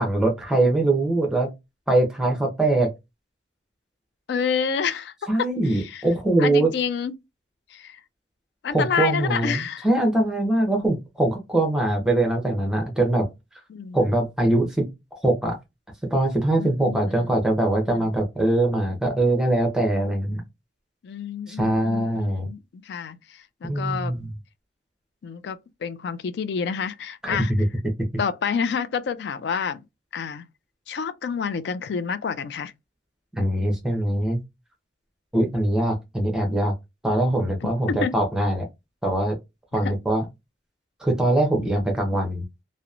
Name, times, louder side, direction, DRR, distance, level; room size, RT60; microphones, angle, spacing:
voice 1, 0.0-1.5 1.9-2.9 5.3-6.7 8.7-13.3 13.9-14.9 15.2-15.6 16.1-20.4 21.5-22.5 23.6-24.3 27.2-27.6 33.3-34.4 35.3-36.7 37.0-38.7 39.0-39.3 39.7-40.2 41.0-42.4, right 1 dB, 5° right, 0.7 m, -22 dB
voice 2, 4.3-5.1 5.4-6.0 6.4-7.1 7.7-8.0 8.6-9.9 13.7-14.0 16.6-17.3 17.9-18.1 21.0-24.2 25.2-27.5 28.2-29.8 30.1-30.4 30.9-32.7 37.9-38.2 39.8-40.0 41.6-41.7, left 6 dB, 60° left, 0.3 m, -29 dB
2.9 x 2.0 x 2.4 m
head